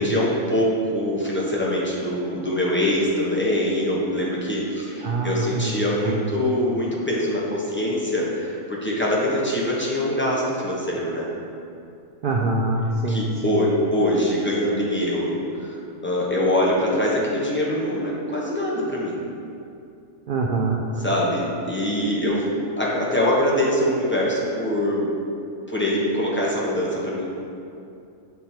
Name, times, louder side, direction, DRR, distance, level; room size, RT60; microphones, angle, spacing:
voice 1, 0.0-11.3 13.1-19.2 21.0-25.1 25.7-27.2, left 1 dB, 10° left, -5 dB, 0.8 m, -23 dB
voice 2, 5.0-6.3 12.2-13.6 20.3-21.0, right 2 dB, 85° right, -1 dB, 0.4 m, -25 dB
7.6 x 3.5 x 4.3 m, 2.6 s
omnidirectional pair, 1.4 m